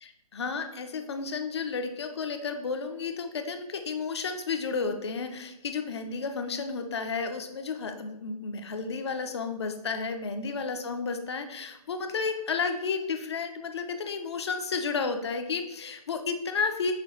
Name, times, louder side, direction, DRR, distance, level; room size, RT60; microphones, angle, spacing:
voice 1, 0.0-16.9, left 5 dB, 45° left, 7 dB, 0.5 m, -32 dB
5.7 x 2.2 x 3.0 m, 0.89 s
figure-of-eight pair, 150°, 20 cm